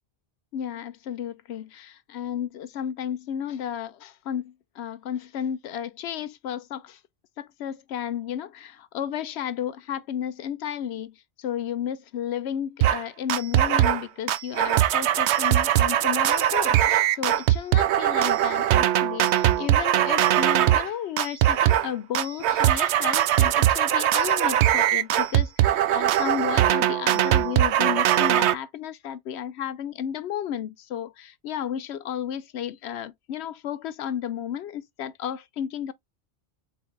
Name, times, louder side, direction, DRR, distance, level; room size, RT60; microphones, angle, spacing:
voice 1, 0.5-7.0 7.4-35.9, left 9 dB, 80° left, 0.9 m, -33 dB
sound 1, 12.8-13.0 13.3-14.0 14.3-20.9 21.2-21.9 22.1-28.5, right 12 dB, 85° right, 0.9 m, -21 dB
4.0 x 3.9 x 3.1 m
omnidirectional pair, 1.1 m